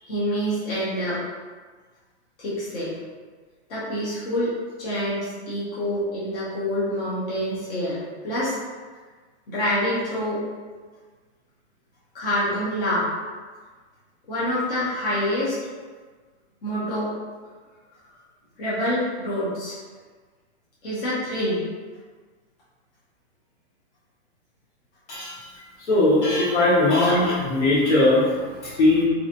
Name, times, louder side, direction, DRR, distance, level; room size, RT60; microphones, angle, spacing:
voice 1, 0.0-1.2 2.4-3.0 3.7-4.5 4.8-8.6 9.5-10.4 12.1-13.1 14.3-15.6 16.6-17.1 18.6-19.8 20.8-21.6, equal, 55° left, -9 dB, 1.0 m, -26 dB
voice 2, 25.8-29.0, left 2 dB, 80° left, -7 dB, 1.3 m, -20 dB
3.0 x 2.7 x 2.5 m, 1.4 s
hypercardioid pair, 175°, 34 cm